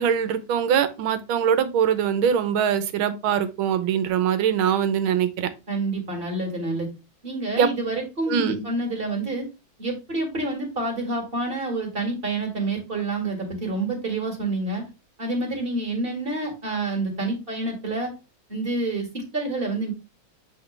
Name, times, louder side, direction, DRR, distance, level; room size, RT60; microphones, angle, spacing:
voice 1, 0.0-5.5 7.6-7.7 8.3-8.6, right 8 dB, 85° right, 11 dB, 1.6 m, -22 dB
voice 2, 5.7-6.9 7.2-9.5 9.8-14.8 15.2-18.1 18.5-19.9, right 2 dB, 30° right, 2 dB, 2.1 m, -28 dB
8.0 x 3.8 x 3.2 m, 0.28 s
omnidirectional pair, 2.2 m